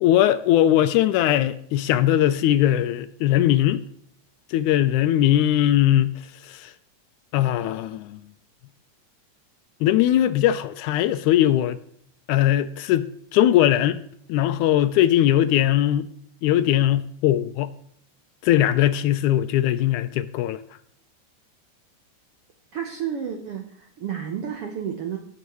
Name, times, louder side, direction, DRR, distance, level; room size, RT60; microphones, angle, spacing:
voice 1, 0.0-3.8 4.5-6.1 6.4-6.7 7.3-8.2 9.8-11.8 12.3-14.0 14.3-16.1 16.4-17.7 18.4-20.6, left 12 dB, 80° left, 1.9 m, -20 dB
voice 2, 22.7-25.2, right 8 dB, 70° right, 1.4 m, -31 dB
16.5 x 7.3 x 3.0 m
omnidirectional pair, 3.7 m